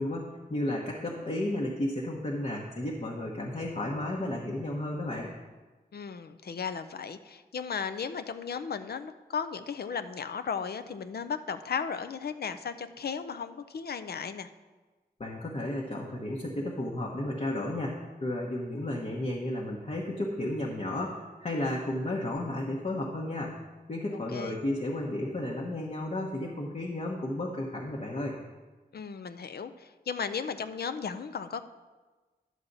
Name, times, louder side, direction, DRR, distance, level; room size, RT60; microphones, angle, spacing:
voice 1, 0.0-5.3 15.2-23.5 23.9-28.4, left 1 dB, 45° left, -3 dB, 1.1 m, -33 dB
voice 2, 5.9-14.5 24.1-24.6 28.9-31.6, left 6 dB, 80° left, 10 dB, 0.5 m, -35 dB
11.0 x 7.3 x 4.0 m, 1.3 s
wide cardioid pair, 110°, 16 cm